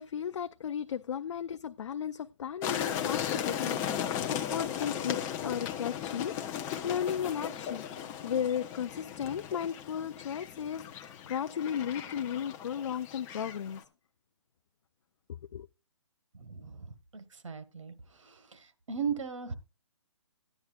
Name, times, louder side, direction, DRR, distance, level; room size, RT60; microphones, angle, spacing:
voice 1, 0.0-13.8 15.5-15.7, left 8 dB, 65° left, 0.4 m, -35 dB
sound 1, 2.6-13.8, left 9 dB, 15° left, 0.7 m, -36 dB
voice 2, 16.3-19.5, right 6 dB, 80° right, 1.4 m, -38 dB
14.0 x 9.9 x 2.3 m
hypercardioid pair, 155°, 16 cm